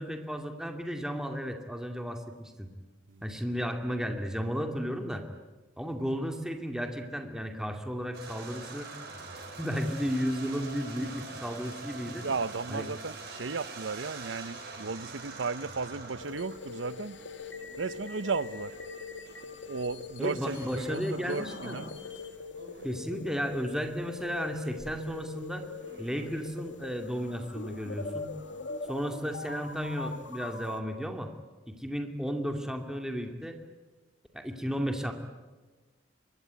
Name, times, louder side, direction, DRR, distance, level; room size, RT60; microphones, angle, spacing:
voice 1, 0.0-2.7 3.2-5.3 5.8-8.9 9.6-12.3 12.7-12.9 20.2-21.8 22.8-25.7 26.0-28.3 28.9-31.3 31.7-33.6 34.3-35.1, equal, 5° right, 2.4 m, -34 dB
sound 1, 8.1-17.1 17.6-18.8 19.2-19.4 20.2-23.2 23.7-24.4 24.6-26.2, right 3 dB, 60° right, 7.9 m, -45 dB
voice 2, 12.2-17.2 17.8-18.7 19.7-21.9, right 4 dB, 90° right, 0.8 m, -35 dB
sound 2, 16.2-30.8, left 4 dB, 70° left, 2.2 m, -43 dB
25.0 x 22.0 x 9.4 m
head